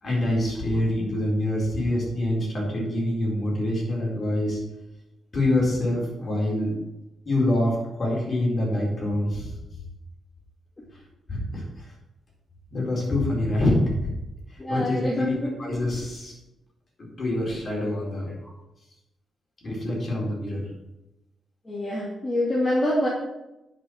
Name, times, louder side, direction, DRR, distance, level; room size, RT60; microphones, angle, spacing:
voice 1, 0.0-4.6 5.3-6.8 7.3-9.6 11.3-11.9 12.7-14.1 14.5-16.3 17.0-18.3 19.6-20.7, left 1 dB, 35° left, -3 dB, 4.3 m, -26 dB
voice 2, 14.6-15.5 18.2-18.5 21.6-23.1, left 1 dB, 20° left, -6 dB, 2.4 m, -26 dB
9.8 x 5.8 x 6.4 m, 0.95 s
cardioid pair, 125°, 0 cm